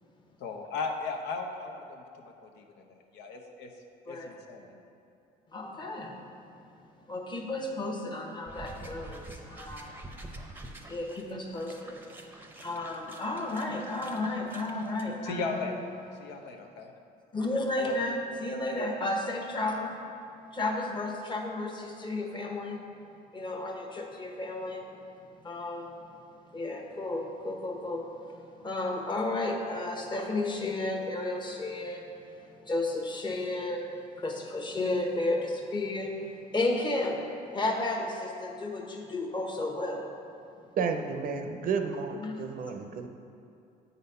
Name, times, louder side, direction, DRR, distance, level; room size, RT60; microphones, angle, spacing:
voice 1, 0.4-3.7 4.1-4.8 15.2-15.8 16.2-16.9 17.8-18.0, left 4 dB, 80° left, 2 dB, 0.8 m, -37 dB
voice 2, 5.5-6.1 7.1-10.0 10.9-12.0 12.6-15.6 17.3-19.9 20.5-22.8 23.3-24.8 25.4-25.9 26.5-28.0 28.6-32.1 32.7-33.8 34.2-36.1 36.5-37.2 37.5-40.0 42.2-42.4, left 2 dB, 25° left, 2 dB, 1.0 m, -32 dB
sound 1, 8.5-15.0, right 2 dB, 10° right, 0.7 m, -47 dB
voice 3, 40.8-43.1, right 5 dB, 55° right, 5 dB, 0.6 m, -32 dB
8.1 x 4.1 x 5.4 m, 2.6 s
cardioid pair, 110°, 17 cm